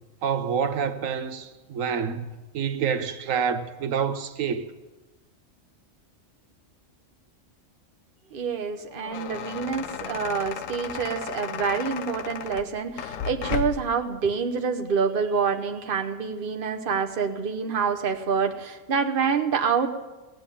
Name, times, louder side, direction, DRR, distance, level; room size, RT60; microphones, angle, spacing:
voice 1, 0.2-2.3 2.5-4.7, right 7 dB, 85° right, 1.2 m, -27 dB
voice 2, 8.3-19.9, right 6 dB, 45° right, 1.1 m, -27 dB
sound 1, 8.8-14.0, left 8 dB, 85° left, 1.2 m, -34 dB
16.5 x 7.8 x 9.9 m
omnidirectional pair, 1.3 m